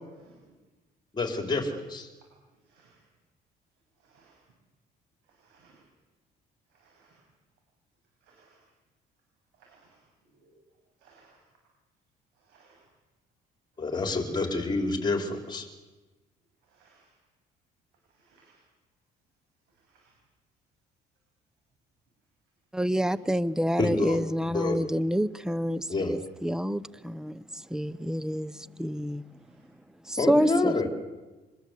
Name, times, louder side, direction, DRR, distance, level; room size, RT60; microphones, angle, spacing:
voice 1, 1.1-2.1 13.8-15.7 23.8-24.8 25.9-26.1 30.2-30.9, left 3 dB, 25° left, 4 dB, 4.3 m, -28 dB
voice 2, 4.0-4.3 5.4-5.8 6.8-7.1 8.3-8.6 9.6-9.9 10.4-10.5 11.0-11.3 12.5-12.8 16.7-17.1 18.2-18.6 19.9-20.0, right 5 dB, 90° right, -1 dB, 7.8 m, -61 dB
voice 3, 22.7-29.2 30.1-30.7, equal, 5° right, 17 dB, 0.8 m, -28 dB
25.5 x 21.0 x 8.4 m, 1.2 s
cardioid pair, 110°, 17 cm